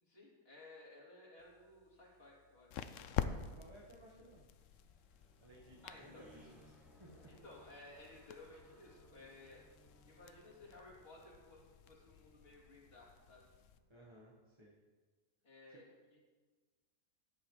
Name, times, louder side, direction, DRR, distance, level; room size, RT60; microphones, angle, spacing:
voice 1, 0.0-2.7 5.8-6.2 7.3-9.6 10.1-13.4 15.4-16.2, left 2 dB, 40° left, -6 dB, 3.3 m, -57 dB
sound 1, 1.4-13.8, left 8 dB, 65° left, 0.8 m, -48 dB
sound 2, 3.4-14.5, equal, ahead, 3.7 m, -66 dB
voice 2, 3.5-4.5 5.4-7.3 13.9-14.8 15.7-15.8, right 1 dB, 20° right, -6 dB, 1.4 m, -59 dB
14.0 x 10.5 x 3.2 m, 1.4 s
omnidirectional pair, 1.6 m